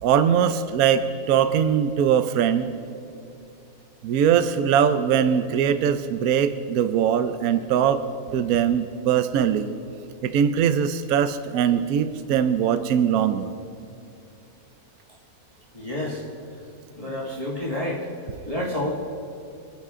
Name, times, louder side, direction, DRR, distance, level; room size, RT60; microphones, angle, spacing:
voice 1, 0.0-2.7 4.0-8.0 8.3-9.7 10.2-13.5, right 8 dB, 75° right, 10 dB, 1.1 m, -21 dB
voice 2, 15.7-16.2 16.9-18.1 18.5-18.9, left 1 dB, 25° left, -5 dB, 1.9 m, -29 dB
25.5 x 10.0 x 3.7 m, 2.7 s
omnidirectional pair, 1.6 m